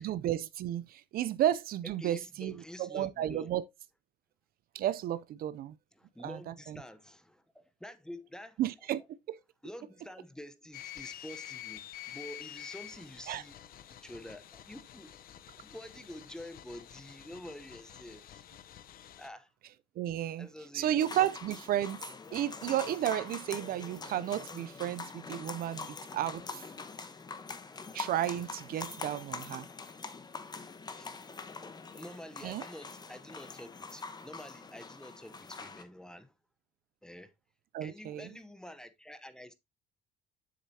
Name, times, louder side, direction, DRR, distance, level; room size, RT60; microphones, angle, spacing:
voice 1, 0.0-3.6 4.7-5.8 6.2-6.8 8.6-9.0 9.3-9.4 13.3-13.4 20.0-20.5 20.7-22.0 22.3-26.7 27.9-29.7 32.4-32.6 37.7-38.3, right 12 dB, 60° right, 0.5 m, -33 dB
voice 2, 1.8-3.5 6.0-8.6 9.6-13.6 13.9-15.2 15.5-18.5 19.2-19.5 20.4-21.0 30.9-31.1 31.9-36.3 37.0-37.3 37.8-39.5, equal, 5° left, 0.8 m, -48 dB
sound 1, 10.7-19.3, left 13 dB, 60° left, 0.7 m, -48 dB
sound 2, 21.0-35.8, left 4 dB, 25° left, 1.0 m, -44 dB
7.7 x 6.6 x 2.7 m
cardioid pair, 110°, 17 cm